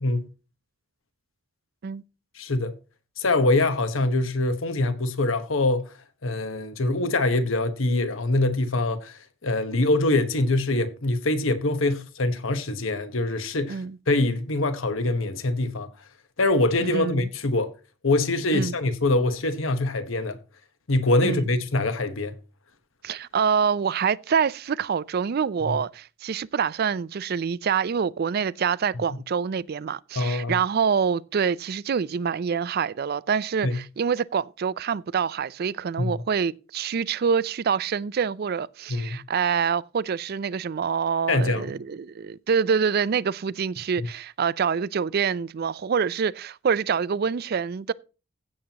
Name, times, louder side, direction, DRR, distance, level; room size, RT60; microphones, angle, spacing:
voice 1, 2.3-2.7 3.2-5.9 6.2-13.8 14.1-15.9 16.4-17.7 18.0-20.4 20.9-22.3 30.2-30.5 33.6-33.8 36.0-36.1 38.9-39.2 41.3-41.7 44.0-44.1, left 2 dB, 80° left, 1.1 m, -24 dB
voice 2, 16.8-17.3 18.5-18.7 21.2-21.5 23.0-47.9, right 6 dB, 50° right, 0.4 m, -26 dB
16.0 x 7.4 x 2.9 m
head